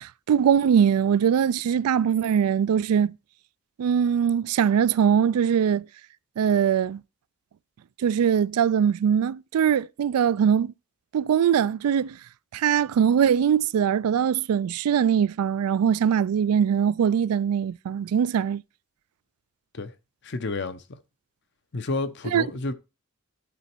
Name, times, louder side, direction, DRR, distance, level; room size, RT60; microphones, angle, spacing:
voice 1, 0.0-3.1 3.8-5.8 6.4-7.0 8.0-10.7 11.1-12.2 12.5-18.6 22.3-22.4, right 8 dB, 90° right, 0.3 m, -22 dB
voice 2, 20.2-21.0 21.7-22.7, left 2 dB, 50° left, 0.7 m, -30 dB
11.5 x 4.0 x 4.5 m
head